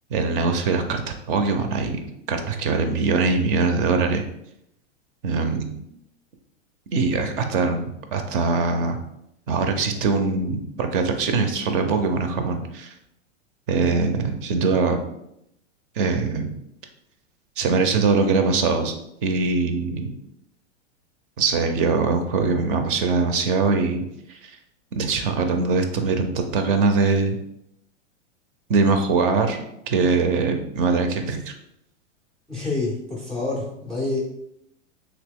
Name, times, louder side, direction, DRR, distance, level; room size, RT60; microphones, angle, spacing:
voice 1, 0.1-4.2 5.2-5.7 6.9-9.0 9.5-12.9 13.7-15.0 16.0-16.5 17.6-18.9 19.2-20.1 21.4-24.0 24.3-24.5 24.9-27.4 28.7-29.6 29.9-31.5, right 4 dB, 50° right, 6 dB, 0.5 m, -22 dB
voice 2, 32.5-34.2, left 2 dB, ahead, -5 dB, 0.3 m, -27 dB
2.9 x 2.8 x 3.5 m, 0.79 s
hypercardioid pair, 135°, 36 cm